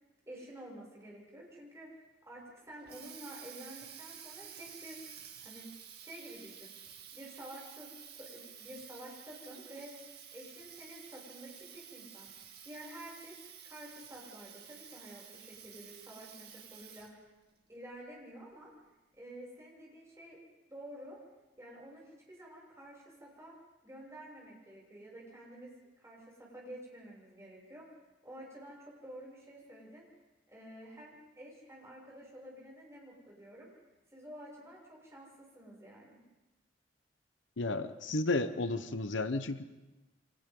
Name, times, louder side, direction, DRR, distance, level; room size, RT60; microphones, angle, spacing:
voice 1, 0.3-5.0 5.4-5.7 6.0-6.7 7.1-10.0 10.3-12.3 12.6-13.4 13.6-17.2 17.7-18.7 19.2-20.4 20.7-21.2 21.6-23.5 23.8-27.9 28.2-30.0 30.5-33.7 34.1-36.2, right 1 dB, 15° right, -3 dB, 6.9 m, -50 dB
Water tap faucet, 2.6-17.3, right 8 dB, 55° right, 2.2 m, -51 dB
voice 2, 37.6-39.6, left 2 dB, 85° left, 10 dB, 1.0 m, -32 dB
29.0 x 25.5 x 3.9 m, 1.1 s
head